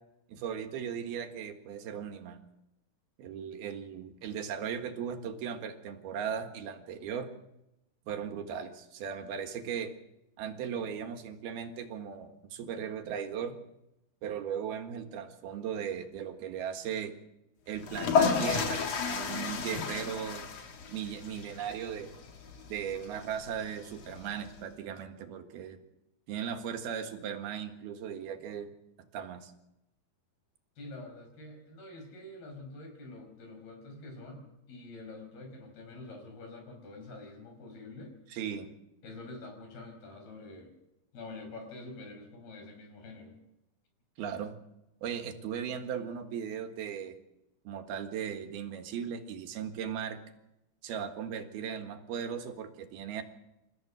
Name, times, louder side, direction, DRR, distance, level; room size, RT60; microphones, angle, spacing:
voice 1, 0.3-2.4 3.2-7.3 8.1-9.9 10.4-13.6 14.2-17.1 17.7-20.5 20.9-22.1 22.7-25.8 26.3-28.7 29.1-29.5 38.3-38.7 44.2-44.6 45.0-47.2 47.7-50.2 50.8-53.2, right 8 dB, 90° right, 6 dB, 3.6 m, -37 dB
sound 1, 17.8-24.6, left 5 dB, 50° left, 2.9 m, -33 dB
voice 2, 30.8-38.2 39.0-40.7 41.1-43.4, left 2 dB, 85° left, 4 dB, 7.3 m, -46 dB
28.5 x 15.0 x 6.3 m, 0.90 s
omnidirectional pair, 4.3 m